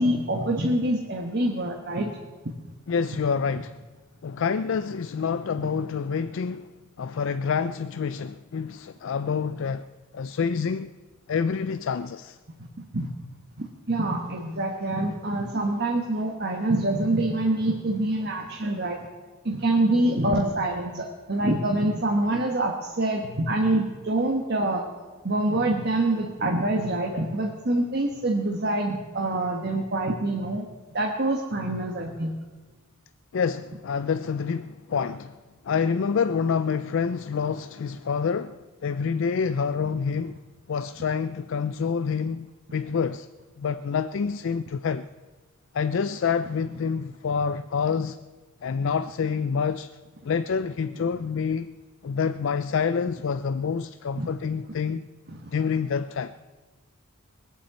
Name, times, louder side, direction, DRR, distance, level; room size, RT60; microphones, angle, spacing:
voice 1, 0.0-2.1 5.6-5.7 12.9-13.1 13.6-19.0 19.4-24.8 25.2-30.6 30.9-32.3 54.2-54.3 55.4-55.5, right 1 dB, 50° right, 1.3 m, -25 dB
voice 2, 2.9-3.8 4.2-6.7 7.0-9.9 10.1-10.9 11.3-12.4 33.3-35.4 35.6-40.3 40.7-43.3 43.6-45.1 45.7-48.2 48.6-49.9 50.2-51.7 52.0-55.1 55.5-56.3, left 6 dB, 60° left, 0.4 m, -27 dB
20.0 x 8.4 x 7.9 m
head